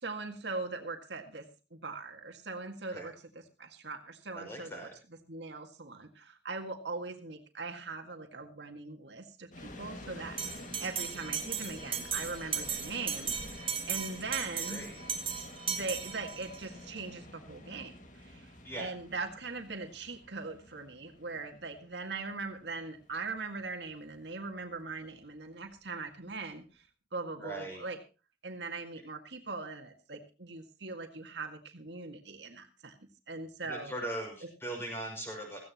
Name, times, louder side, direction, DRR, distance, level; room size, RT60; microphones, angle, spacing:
voice 1, 0.0-1.4 1.7-3.1 3.6-4.9 5.3-14.9 15.7-18.5 18.8-26.8 27.1-28.0 28.4-33.0 33.3-33.9, right 3 dB, 75° right, 4 dB, 1.9 m, -41 dB
voice 2, 4.3-4.9 14.7-14.9 18.6-18.9 27.4-27.8 33.6-35.6, right 1 dB, 15° left, 1 dB, 6.1 m, -40 dB
sound 1, 9.5-26.5, left 1 dB, 45° left, 2.1 m, -50 dB
Bell, 10.4-16.6, right 7 dB, 30° right, 1.6 m, -37 dB
16.5 x 15.5 x 2.9 m, 0.32 s
head